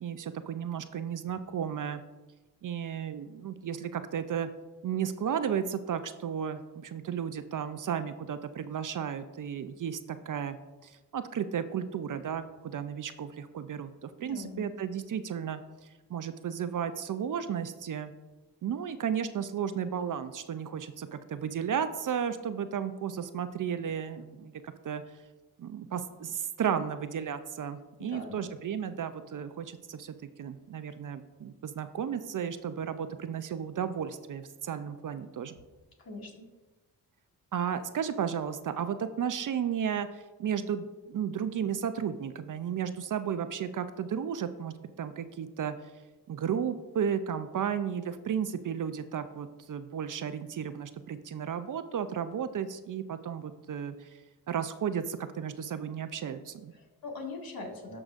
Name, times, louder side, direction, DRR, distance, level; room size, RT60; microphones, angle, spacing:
voice 1, 0.0-2.0 2.6-4.5 4.8-10.6 10.8-15.6 16.1-18.1 18.6-25.0 25.6-35.6 37.5-45.7 46.3-54.1 54.5-56.7, right 8 dB, 50° right, 11 dB, 0.5 m, -34 dB
voice 2, 14.2-14.7 28.0-28.5 36.0-36.5 56.7-58.0, left 3 dB, 55° left, 0 dB, 2.0 m, -41 dB
12.5 x 4.9 x 2.5 m, 1.2 s
supercardioid pair, 50°, 42 cm